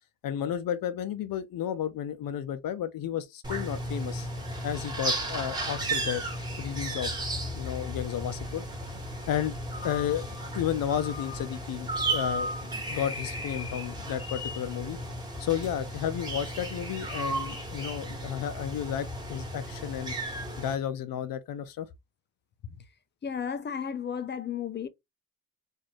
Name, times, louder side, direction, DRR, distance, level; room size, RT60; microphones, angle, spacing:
voice 1, 0.2-4.3 4.6-6.2 6.6-7.1 7.5-8.6 9.3-9.6 9.8-10.3 10.5-15.0 15.4-20.1 20.6-21.9, left 10 dB, 75° left, 0.7 m, -32 dB
sound 1, 3.4-20.7, right 1 dB, 10° right, 1.4 m, -34 dB
voice 2, 23.2-24.9, left 7 dB, 30° left, 0.5 m, -33 dB
4.3 x 2.6 x 3.0 m
wide cardioid pair, 160°, 34 cm